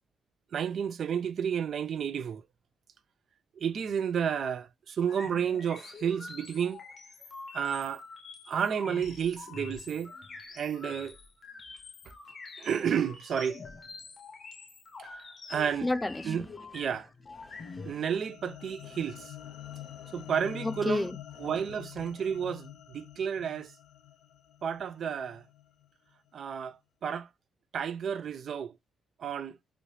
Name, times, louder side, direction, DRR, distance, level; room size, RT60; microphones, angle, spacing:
voice 1, 0.5-2.4 3.6-6.8 7.5-8.0 8.5-10.1 10.6-11.2 12.6-13.6 15.5-15.9 16.3-16.4 16.7-17.1 17.8-19.2 20.1-21.1 21.4-23.7 24.6-25.4 26.3-26.8 27.0-27.3 27.7-28.7 29.2-29.6, right 7 dB, 60° right, 0.4 m, -31 dB
sound 1, 5.1-17.9, left 4 dB, 40° left, 0.7 m, -46 dB
voice 2, 15.8-16.4 17.4-18.0 19.6-20.1 20.6-21.2, left 2 dB, 15° left, 0.3 m, -33 dB
sound 2, 17.4-25.9, left 13 dB, 85° left, 0.4 m, -47 dB
3.1 x 2.7 x 3.1 m
cardioid pair, 115°, 0 cm